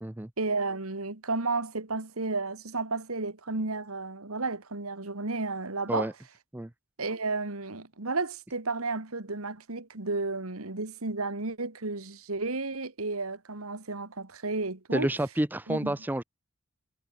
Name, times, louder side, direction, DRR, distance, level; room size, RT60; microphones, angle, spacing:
voice 1, 0.4-6.1 7.0-15.1 15.7-16.0, right 3 dB, 90° right, 2.2 m, -32 dB
voice 2, 14.9-16.2, right 1 dB, 10° right, 0.5 m, -29 dB
head